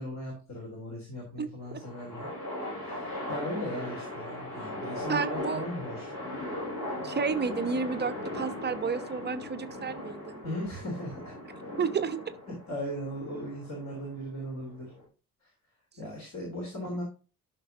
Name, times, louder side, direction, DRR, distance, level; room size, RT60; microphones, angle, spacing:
voice 1, 0.0-2.3 2.8-6.1 10.4-11.3 12.5-15.0 15.4-15.5 16.0-17.0, equal, 40° left, 3.6 m, -38 dB
sound 1, 1.6-15.0, left 1 dB, 60° left, 4.7 m, -38 dB
voice 2, 5.1-5.6 7.0-10.4 11.8-12.3, right 5 dB, 25° right, 0.8 m, -31 dB
13.5 x 6.0 x 2.8 m
figure-of-eight pair, 45°, 43 cm